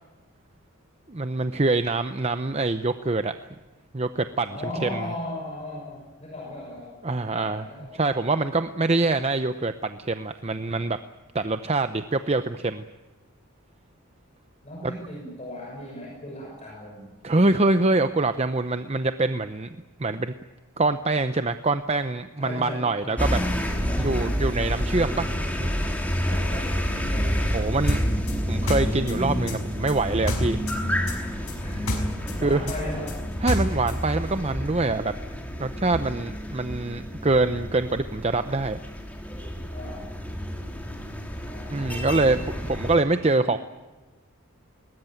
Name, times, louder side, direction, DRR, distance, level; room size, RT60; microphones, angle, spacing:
voice 1, 1.1-3.3 3.9-5.1 7.0-7.7 7.9-11.0 11.3-12.8 14.8-14.9 17.2-19.7 20.0-20.3 20.8-23.4 24.0-25.7 27.5-28.0 28.5-30.6 32.4-32.7 33.4-35.1 35.6-38.8 41.7-43.6, right 2 dB, 30° right, 10 dB, 0.7 m, -25 dB
voice 2, 4.5-8.0 10.5-10.8 14.6-17.1 22.4-23.5 23.9-24.4 26.2-27.4 31.6-31.9 32.2-33.1 39.7-40.1 41.4-42.3 43.4-43.6, left 1 dB, 30° left, -2 dB, 6.3 m, -37 dB
sound 1, 23.2-43.0, equal, 5° left, 2.9 m, -29 dB
sound 2, 27.9-30.8 31.1-34.0, left 1 dB, 80° left, 5.9 m, -29 dB
21.5 x 19.5 x 9.2 m, 1.2 s
head